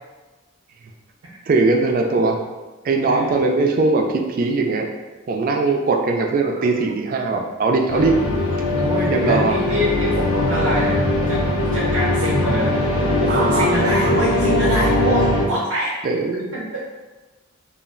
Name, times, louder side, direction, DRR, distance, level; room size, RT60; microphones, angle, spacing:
voice 1, 1.5-2.4 2.8-4.9 5.3-8.2 9.1-9.8 13.3-13.7 14.0-14.1 16.0-16.5, right 3 dB, 40° right, 2 dB, 0.3 m, -20 dB
sound 1, 7.9-15.5, left 2 dB, 85° left, 0.5 m, -20 dB
voice 2, 8.7-11.0 11.3-11.4 11.7-15.9 16.5-16.8, right 1 dB, 90° right, -6 dB, 0.8 m, -24 dB
2.3 x 2.1 x 3.6 m, 1.2 s
head